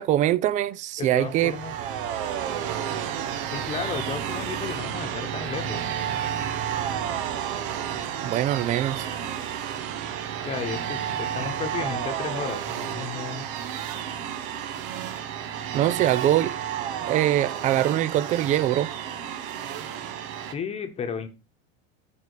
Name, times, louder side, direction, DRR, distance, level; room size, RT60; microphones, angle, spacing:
voice 1, 0.0-1.6 8.2-9.1 15.7-16.5 17.1-18.9, right 13 dB, 25° right, 0.4 m, -23 dB
voice 2, 1.0-1.7 3.5-5.8 10.4-13.4 20.5-21.3, left 6 dB, 20° left, 1.2 m, -33 dB
sound 1, 1.1-20.5, right 9 dB, 65° right, 1.4 m, -31 dB
12.0 x 5.2 x 4.8 m
supercardioid pair, 155°, 30 cm